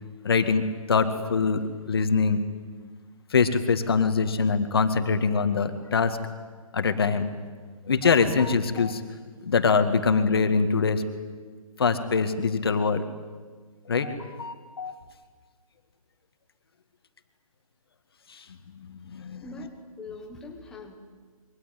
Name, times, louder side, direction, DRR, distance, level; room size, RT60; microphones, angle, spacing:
voice 1, 0.2-2.4 3.3-6.2 6.7-7.3 7.9-9.0 9.4-11.0 11.8-13.0 13.9-14.9 18.3-18.4 18.7-19.4, left 5 dB, 40° left, 8 dB, 2.1 m, -24 dB
voice 2, 19.4-21.0, left 2 dB, 5° left, 1 dB, 1.3 m, -42 dB
27.0 x 23.5 x 9.3 m, 1.6 s
hypercardioid pair, 175°, 19 cm